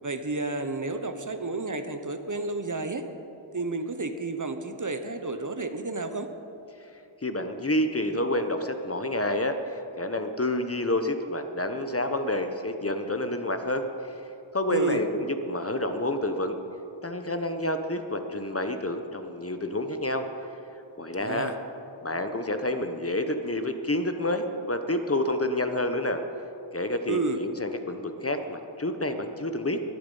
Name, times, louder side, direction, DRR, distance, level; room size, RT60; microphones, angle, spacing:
voice 1, 0.0-3.0 3.5-6.3 14.7-15.0 21.2-21.6 27.1-27.4, right 3 dB, 40° right, 8 dB, 0.9 m, -31 dB
voice 2, 7.2-14.1 14.5-16.6 17.0-20.3 21.0-21.5 22.0-26.2 26.7-29.8, left 1 dB, 30° left, 7 dB, 0.9 m, -29 dB
22.0 x 8.6 x 5.5 m, 2.8 s
wide cardioid pair, 70°, 47 cm